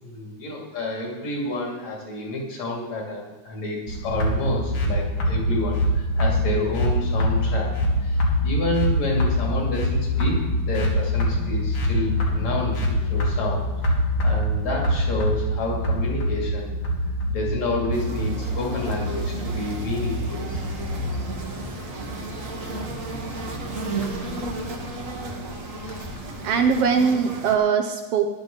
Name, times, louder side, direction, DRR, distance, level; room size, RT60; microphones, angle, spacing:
voice 1, 0.0-7.7 8.0-13.7 14.2-16.7 17.3-20.4, left 2 dB, 60° left, -2 dB, 4.0 m, -29 dB
sound 1, 3.9-21.1, equal, 75° left, 3.6 m, -24 dB
sound 2, 17.9-27.6, right 2 dB, 50° right, 1.0 m, -34 dB
sound 3, 20.5-26.8, equal, 20° left, 0.9 m, -40 dB
voice 2, 26.4-28.3, right 6 dB, 75° right, 5 dB, 1.4 m, -21 dB
14.5 x 11.0 x 4.0 m, 1.1 s
omnidirectional pair, 3.5 m